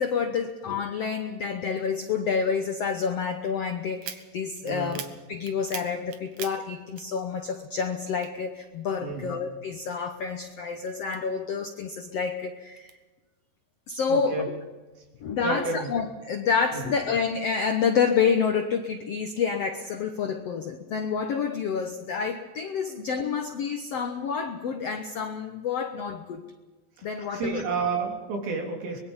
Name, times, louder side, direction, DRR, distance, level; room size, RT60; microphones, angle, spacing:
voice 1, 0.0-5.0 5.3-12.9 13.9-14.6 15.2-26.4 27.0-27.6, left 6 dB, 70° left, 6 dB, 1.5 m, -28 dB
sound 1, 4.0-7.6 7.9-9.2 9.6-11.7 12.2-13.0, right 9 dB, 60° right, 2.5 m, -42 dB
voice 2, 4.6-5.0 9.0-9.4 14.1-14.5 15.4-15.9 16.7-16.9 22.9-23.0 27.0-29.0, right 4 dB, 80° right, 1 dB, 5.2 m, -31 dB
24.5 x 21.5 x 5.6 m, 1.2 s
omnidirectional pair, 4.2 m